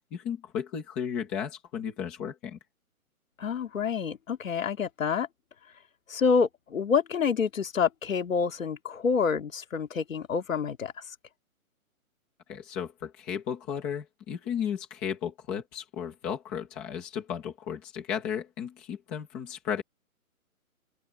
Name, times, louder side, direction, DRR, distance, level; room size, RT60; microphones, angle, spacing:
voice 1, 0.0-2.6 12.5-19.8, left 8 dB, 5° left, 0.9 m, -34 dB
voice 2, 3.4-5.3 6.1-10.9, left 6 dB, 60° left, 2.3 m, -27 dB
open air
hypercardioid pair, 175°, 44 cm